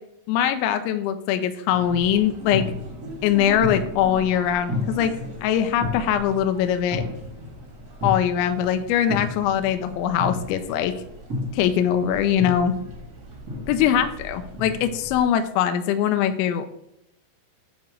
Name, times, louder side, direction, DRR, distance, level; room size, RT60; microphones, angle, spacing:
voice 1, 0.3-2.7 3.2-5.1 5.4-7.0 8.0-10.9 11.5-12.7 13.7-16.7, left 9 dB, 80° left, 8 dB, 2.8 m, -22 dB
sound 1, 1.7-15.3, left 2 dB, 50° right, 1.2 m, -34 dB
10.5 x 3.5 x 6.4 m, 0.81 s
omnidirectional pair, 5.7 m